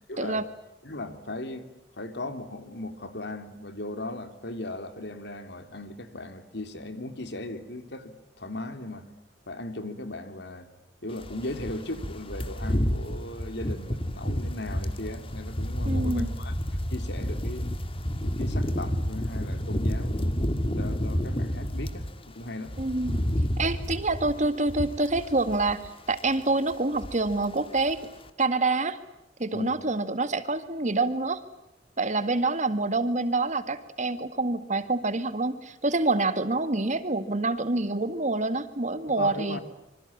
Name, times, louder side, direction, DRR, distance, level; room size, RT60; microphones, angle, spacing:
voice 1, 0.1-0.5 0.8-1.7 2.0-9.0 9.5-10.7 11.0-16.5 16.9-17.8 18.2-20.4 20.7-22.8 29.5-29.8 39.1-39.6, left 2 dB, 65° left, 9 dB, 3.2 m, -37 dB
sound 1, 11.2-22.1 22.5-25.9 26.1-26.4 26.7-27.5 27.8-28.0, equal, 30° left, 2.0 m, -30 dB
voice 2, 15.8-16.3 22.8-23.2 23.6-28.1 28.4-29.0 29.4-31.4 32.0-39.6, right 2 dB, 40° right, 11 dB, 2.0 m, -27 dB
26.5 x 25.5 x 8.7 m, 0.87 s
head